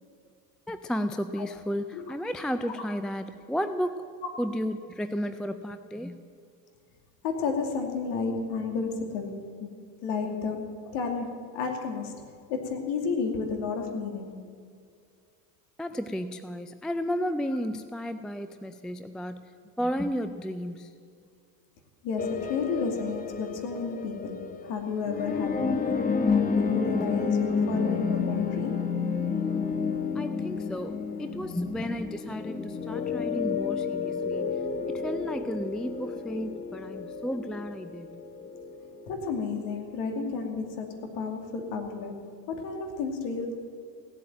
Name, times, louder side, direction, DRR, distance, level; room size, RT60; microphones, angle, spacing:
voice 1, 0.7-6.2 15.8-19.4 19.8-20.9 30.2-30.9 31.2-34.6 34.9-38.1, equal, ahead, 10 dB, 0.3 m, -33 dB
voice 2, 7.2-9.7 10.0-12.2 12.5-14.3 22.0-26.1 26.5-28.9 39.1-40.9 41.1-43.6, left 5 dB, 65° left, 4 dB, 2.8 m, -32 dB
sound 1, 22.2-39.9, left 5 dB, 15° left, 1.1 m, -30 dB
17.0 x 8.5 x 9.0 m, 2.2 s
hypercardioid pair, 90°, 49 cm